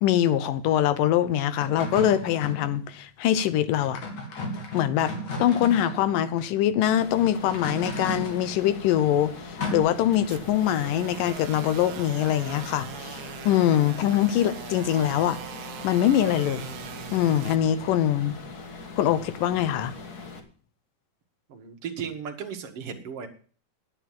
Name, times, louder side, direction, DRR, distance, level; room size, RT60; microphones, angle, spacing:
voice 1, 0.0-4.0 4.7-15.4 15.8-16.7 17.1-18.3 19.0-19.9, left 11 dB, 80° left, 2.6 m, -23 dB
sound 1, 1.6-2.7 3.8-6.4 7.4-8.5 9.6-9.8, left 1 dB, 60° left, 3.7 m, -34 dB
sound 2, 6.8-20.4, left 4 dB, 45° left, 1.4 m, -41 dB
sound 3, 10.1-17.6, right 11 dB, 70° right, 2.0 m, -41 dB
voice 2, 21.5-23.3, right 7 dB, 50° right, 2.1 m, -35 dB
10.5 x 8.9 x 7.5 m
omnidirectional pair, 3.8 m